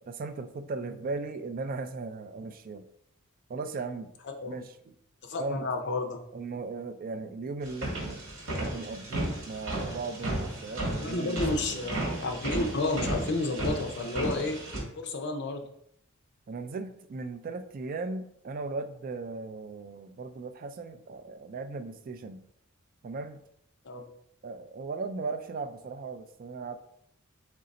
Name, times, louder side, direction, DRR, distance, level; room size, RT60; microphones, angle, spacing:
voice 1, 0.1-2.8 3.5-4.1 4.5-4.9 5.4-5.7 6.3-8.2 8.7-11.9 16.5-22.4 23.0-23.4 24.4-26.9, right 3 dB, 45° right, 10 dB, 0.3 m, -37 dB
voice 2, 5.2-6.2 11.0-14.6 15.0-15.6 23.8-24.1, left 3 dB, 55° left, 4 dB, 0.6 m, -31 dB
sound 1, 7.6-14.8, right 1 dB, 65° right, 1.6 m, -34 dB
3.8 x 3.3 x 4.1 m, 0.73 s
head